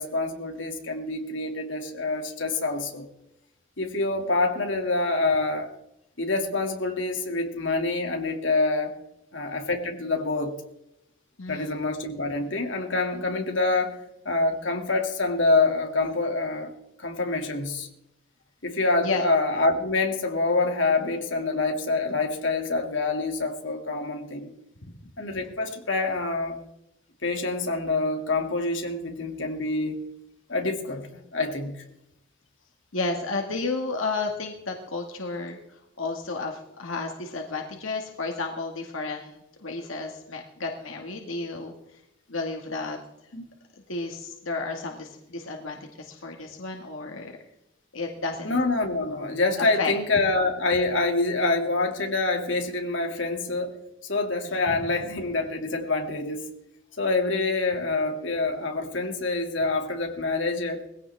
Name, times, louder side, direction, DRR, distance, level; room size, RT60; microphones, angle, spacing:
voice 1, 0.0-3.1 3.8-5.7 6.2-9.0 9.3-10.5 11.5-14.0 14.2-16.7 17.0-17.9 18.6-24.5 25.2-26.6 27.2-30.0 30.5-31.8 43.3-43.4 48.4-53.7 54.0-56.4 57.0-60.8, left 3 dB, 70° left, 3 dB, 2.6 m, -26 dB
voice 2, 11.4-11.7 19.0-19.2 24.8-24.9 32.9-42.0 42.3-43.0 43.9-47.4 47.9-48.6 49.6-49.9 54.5-54.6, left 3 dB, 90° left, 2 dB, 2.0 m, -32 dB
21.0 x 16.0 x 3.6 m, 0.85 s
head